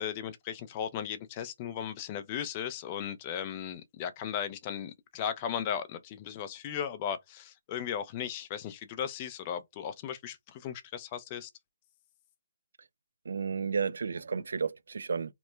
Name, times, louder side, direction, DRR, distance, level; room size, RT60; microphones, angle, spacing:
voice 1, 0.0-11.5, left 9 dB, 25° left, 0.4 m, -36 dB
voice 2, 13.2-15.3, right 5 dB, 75° right, 0.4 m, -32 dB
2.9 x 2.1 x 3.1 m
hypercardioid pair, 160°, 0 cm